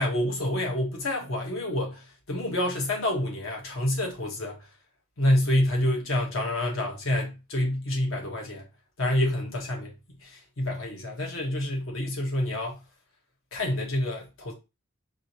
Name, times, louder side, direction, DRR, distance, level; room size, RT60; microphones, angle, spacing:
voice 1, 0.0-4.6 5.2-8.7 9.0-9.9 10.2-12.8 13.5-14.5, left 1 dB, 70° left, 1.3 m, -28 dB
4.9 x 2.7 x 2.9 m
head